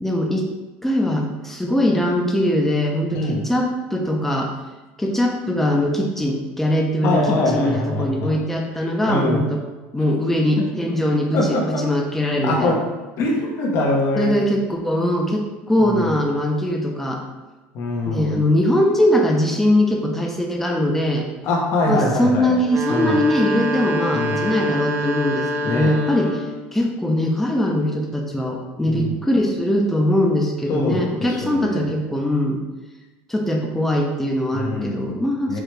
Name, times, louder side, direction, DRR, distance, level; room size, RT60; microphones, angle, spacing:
voice 1, 0.0-0.5 0.8-4.5 5.0-9.6 9.9-12.8 14.2-17.2 18.1-21.3 21.9-26.5 26.7-32.6 33.3-35.6, left 1 dB, 5° left, 0 dB, 0.8 m, -21 dB
voice 2, 3.1-3.5 7.0-8.4 9.1-9.4 11.3-11.8 12.4-12.8 13.2-14.3 15.8-16.1 17.7-18.5 21.4-22.6 22.9-23.2 24.1-24.5 25.6-25.9 28.8-29.2 30.7-31.8 34.5-35.2 35.5-35.6, left 1 dB, 60° left, -1 dB, 1.1 m, -23 dB
sound 1, 22.6-26.6, equal, 55° right, 0.7 m, -25 dB
4.8 x 3.2 x 3.3 m, 1.2 s
supercardioid pair, 105°, 5 cm